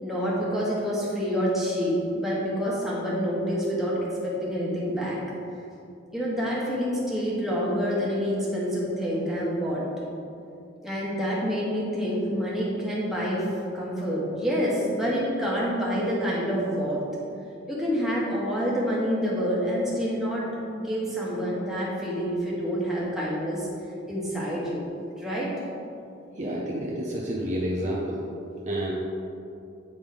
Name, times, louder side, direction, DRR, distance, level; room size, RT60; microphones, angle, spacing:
voice 1, 0.0-5.2 6.1-9.8 10.8-13.4 13.7-17.0 17.7-20.5 20.7-23.7 24.1-24.8 25.2-25.5, equal, ahead, -7 dB, 1.3 m, -27 dB
voice 2, 26.4-28.2 28.7-28.9, equal, 35° right, -3 dB, 0.6 m, -29 dB
8.7 x 3.6 x 4.7 m, 2.6 s
head